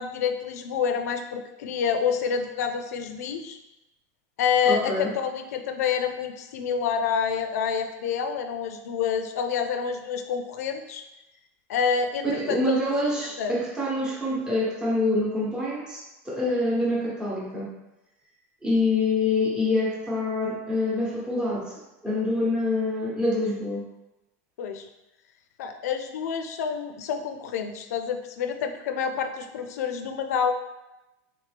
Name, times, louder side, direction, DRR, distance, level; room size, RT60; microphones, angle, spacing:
voice 1, 0.0-3.6 4.4-11.0 11.7-12.8 13.4-13.6 24.6-24.9 25.6-30.5, left 7 dB, 85° left, 7 dB, 0.4 m, -28 dB
voice 2, 4.7-5.1 12.2-17.7 18.6-23.9, left 2 dB, 10° right, -6 dB, 0.9 m, -26 dB
3.3 x 3.0 x 3.3 m, 0.97 s
supercardioid pair, 145°, 8 cm